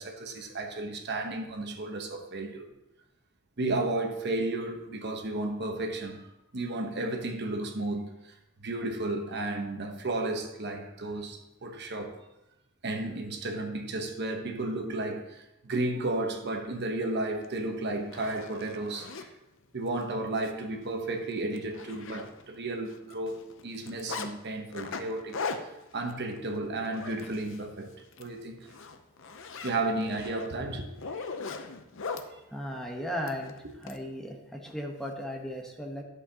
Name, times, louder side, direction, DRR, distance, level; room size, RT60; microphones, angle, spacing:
voice 1, 0.0-2.7 3.6-6.3 6.5-8.3 8.6-12.1 12.8-19.3 19.7-25.4 25.9-27.9 28.2-28.7 29.6-30.9, right 2 dB, 55° right, 4 dB, 1.0 m, -33 dB
Zipper (clothing), 17.4-17.5 18.0-19.3 19.9-20.0 20.4-20.5 20.9-21.0 21.3-22.6 22.9-24.3 24.7-27.7 28.0-28.3 28.6-32.3 33.3-34.0, left 4 dB, 65° left, 0.7 m, -39 dB
voice 2, 32.5-33.5 33.8-36.0, equal, ahead, 0 dB, 1.1 m, -36 dB
11.0 x 7.5 x 2.9 m, 0.92 s
head